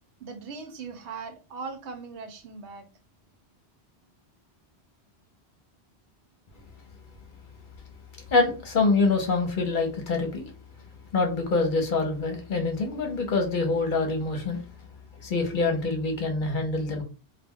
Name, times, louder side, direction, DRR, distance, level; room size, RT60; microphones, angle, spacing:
voice 1, 0.2-2.9, right 4 dB, 85° right, 0.9 m, -39 dB
voice 2, 8.3-10.4 11.1-14.6 15.2-17.0, left 3 dB, 55° left, 0.7 m, -25 dB
2.2 x 2.1 x 3.5 m
omnidirectional pair, 1.1 m